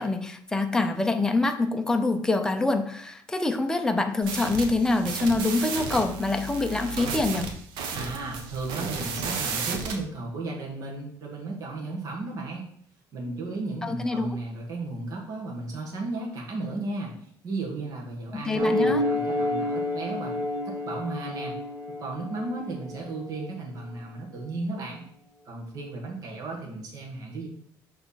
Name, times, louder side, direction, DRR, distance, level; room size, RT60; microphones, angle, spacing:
voice 1, 0.0-7.5 13.8-14.4 18.3-19.1, left 2 dB, 10° left, 6 dB, 0.6 m, -25 dB
sound 1, 4.2-10.0, right 4 dB, 85° right, 1.1 m, -33 dB
voice 2, 7.9-12.7 13.1-21.5 22.0-25.0 25.4-27.5, right 2 dB, 45° right, -1 dB, 1.5 m, -35 dB
sound 2, 18.6-23.5, left 1 dB, 30° right, 1.3 m, -29 dB
6.4 x 3.4 x 5.7 m, 0.65 s
cardioid pair, 150°, 8 cm